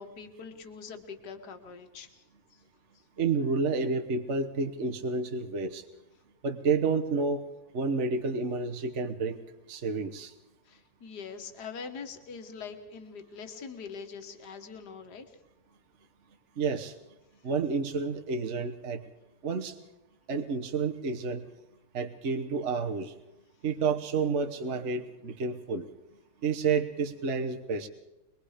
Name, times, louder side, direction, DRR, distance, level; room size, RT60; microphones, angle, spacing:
voice 1, 0.0-2.2 10.7-15.3, left 5 dB, 65° left, 6 dB, 2.1 m, -43 dB
voice 2, 3.2-5.8 6.4-7.4 7.7-9.4 9.7-10.3 16.6-16.9 17.4-19.0 19.4-19.7 20.3-21.4 21.9-23.1 23.6-25.9 26.4-27.9, right 4 dB, 45° right, 4 dB, 1.2 m, -30 dB
24.5 x 21.5 x 5.0 m, 0.97 s
omnidirectional pair, 1.9 m